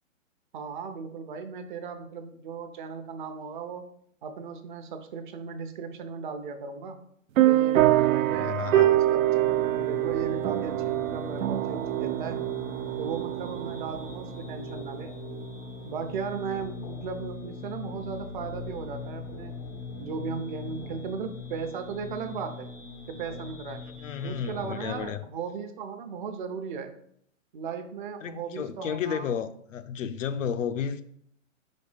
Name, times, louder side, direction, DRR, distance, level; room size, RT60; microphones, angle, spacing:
voice 1, 0.5-3.9 4.2-7.0 7.4-12.4 13.0-15.1 15.8-19.5 20.0-22.7 23.1-23.9 24.2-27.0 27.5-29.3, right 5 dB, 40° right, 0.7 m, -36 dB
sound 1, 7.4-15.5, right 15 dB, 75° right, 0.5 m, -25 dB
voice 2, 8.1-9.0 24.0-25.2 28.2-31.0, left 8 dB, 65° left, 0.7 m, -32 dB
sound 2, 8.7-25.1, left 5 dB, 15° left, 0.5 m, -41 dB
4.8 x 4.3 x 4.9 m
hypercardioid pair, 140°, 40 cm